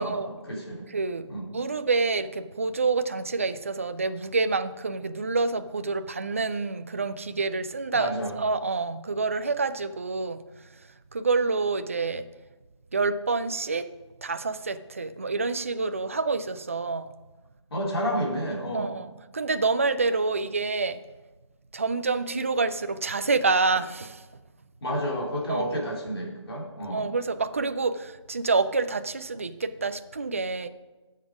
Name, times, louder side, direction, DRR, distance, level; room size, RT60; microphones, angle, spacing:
voice 1, 0.0-0.8 1.3-1.5 7.9-8.3 17.7-18.9 24.8-27.1, equal, 55° left, -2 dB, 3.1 m, -30 dB
voice 2, 0.9-8.1 8.4-10.4 11.1-12.3 12.9-13.9 14.2-17.1 18.7-21.0 21.7-24.2 25.5-25.7 26.9-30.7, right 4 dB, 25° right, 12 dB, 0.4 m, -27 dB
12.5 x 7.3 x 4.8 m, 1.2 s
figure-of-eight pair, 160°, 16 cm